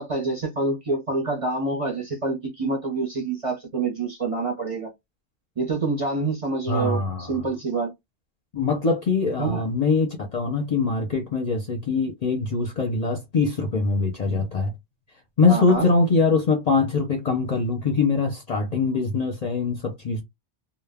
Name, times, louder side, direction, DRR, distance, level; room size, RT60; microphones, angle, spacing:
voice 1, 0.0-4.9 5.6-7.9 9.4-9.6 15.5-15.9, right 3 dB, 40° right, 0.5 m, -27 dB
voice 2, 6.7-7.3 8.5-14.7 15.4-20.2, left 4 dB, 50° left, 0.5 m, -23 dB
2.2 x 2.0 x 3.3 m
omnidirectional pair, 1.1 m